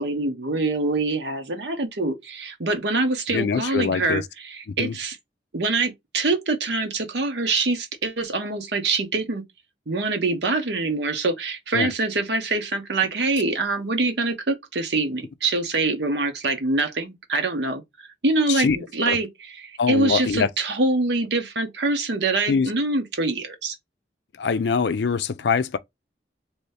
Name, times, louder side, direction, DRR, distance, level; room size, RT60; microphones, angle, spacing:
voice 1, 0.0-5.2 5.5-9.4 9.9-23.7, right 3 dB, 85° right, 0.9 m, -25 dB
voice 2, 3.3-4.2 4.8-4.9 11.7-11.9 18.5-18.8 19.1-19.2 19.8-20.5 22.5-22.7 24.4-25.8, left 5 dB, 85° left, 0.4 m, -23 dB
3.0 x 2.7 x 3.2 m
head